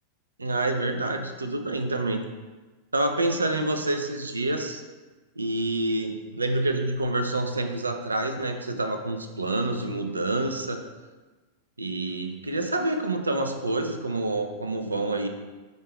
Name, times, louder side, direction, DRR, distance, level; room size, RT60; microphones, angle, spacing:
voice 1, 0.4-2.2 2.9-4.8 5.4-10.8 11.8-15.3, right 2 dB, 80° right, 6 dB, 0.4 m, -27 dB
5.2 x 2.4 x 3.1 m, 1.2 s
figure-of-eight pair, 90°, 0 cm